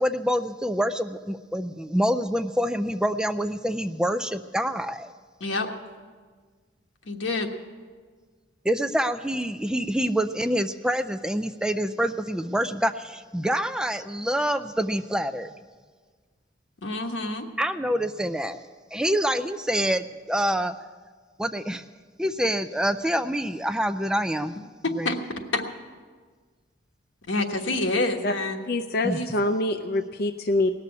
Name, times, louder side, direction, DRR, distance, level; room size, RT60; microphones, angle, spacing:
voice 1, 0.0-5.1 8.6-15.5 17.6-18.6 18.9-20.8 21.4-21.8 22.2-24.6 25.0-25.1 29.0-29.2, equal, 5° right, 10 dB, 0.3 m, -26 dB
voice 2, 7.1-7.5 16.8-17.5 24.8-25.2 25.5-25.6 27.3-28.6 29.1-29.3, left 2 dB, 85° left, 3 dB, 1.3 m, -27 dB
voice 3, 28.7-30.7, left 2 dB, 55° left, 6 dB, 0.5 m, -25 dB
18.5 x 6.8 x 9.4 m, 1.5 s
head